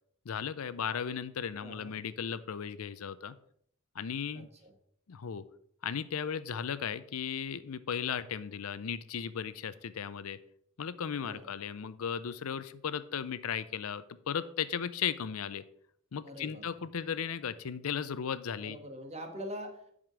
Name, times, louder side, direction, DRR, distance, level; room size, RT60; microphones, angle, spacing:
voice 1, 0.3-3.3 3.9-4.5 5.1-5.4 5.8-10.4 10.8-15.6 16.1-18.8, left 7 dB, 85° left, 15 dB, 0.5 m, -36 dB
voice 2, 1.6-2.0 4.3-4.7 11.2-11.4 16.2-16.7 18.6-19.9, equal, 30° right, 4 dB, 1.4 m, -44 dB
7.3 x 5.1 x 5.9 m, 0.66 s
head